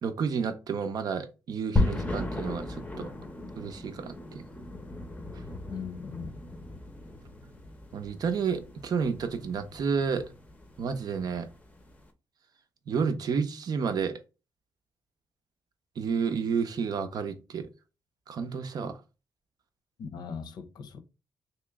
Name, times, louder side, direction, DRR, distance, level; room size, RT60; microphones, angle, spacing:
voice 1, 0.0-3.1 3.6-4.4 5.3-5.4 7.9-10.3 10.8-11.5 12.9-14.2 16.0-17.7 18.3-19.0, right 6 dB, 55° right, 0.6 m, -31 dB
sound 1, 1.8-12.0, left 2 dB, 15° left, 0.6 m, -36 dB
voice 2, 5.7-6.3 20.0-21.0, left 6 dB, 65° left, 0.6 m, -39 dB
3.1 x 2.9 x 3.4 m
cardioid pair, 125°, 8 cm